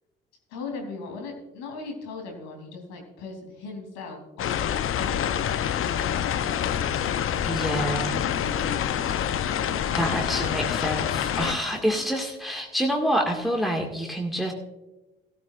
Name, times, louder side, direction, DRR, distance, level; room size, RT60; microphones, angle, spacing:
voice 1, 0.5-9.2 9.5-10.2 11.5-12.1, left 4 dB, 75° left, 2 dB, 3.1 m, -39 dB
sound 1, 4.4-11.5, left 9 dB, 45° left, 0.7 m, -26 dB
voice 2, 7.4-8.2 9.9-14.5, equal, ahead, 1 dB, 1.9 m, -27 dB
16.5 x 13.5 x 2.5 m, 1.0 s
hypercardioid pair, 50°, 29 cm